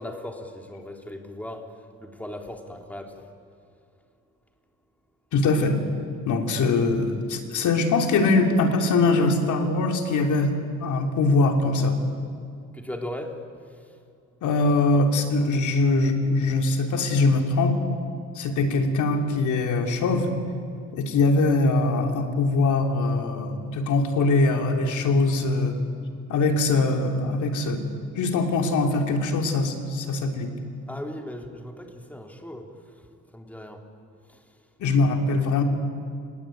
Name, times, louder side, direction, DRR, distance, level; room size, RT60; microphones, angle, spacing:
voice 1, 0.0-1.7 2.0-3.3 12.7-13.5 13.7-13.9 30.9-32.7 33.0-33.8 34.3-34.5 35.1-35.2, left 1 dB, 5° left, 2 dB, 3.5 m, -38 dB
voice 2, 5.3-5.8 6.2-10.5 10.8-12.0 14.4-17.8 18.3-20.3 20.9-25.8 26.3-27.8 28.2-30.5 34.8-35.6, left 3 dB, 75° left, 3 dB, 3.2 m, -22 dB
29.0 x 19.0 x 9.1 m, 2.3 s
cardioid pair, 90°, 30 cm